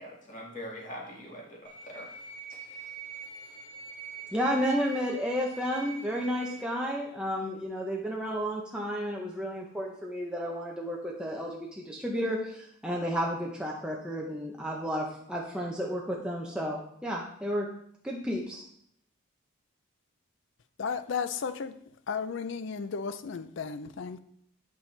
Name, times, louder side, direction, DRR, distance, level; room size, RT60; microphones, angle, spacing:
voice 1, 0.0-2.1 2.5-2.9, left 1 dB, 35° left, 1.9 m, -43 dB
sound 1, 1.6-6.7, right 4 dB, 40° right, 1.3 m, -44 dB
voice 2, 4.3-17.7 18.0-18.6, equal, 5° right, 0.6 m, -32 dB
voice 3, 20.8-21.7 22.1-24.2, left 5 dB, 60° left, 0.4 m, -34 dB
8.8 x 5.4 x 3.3 m
head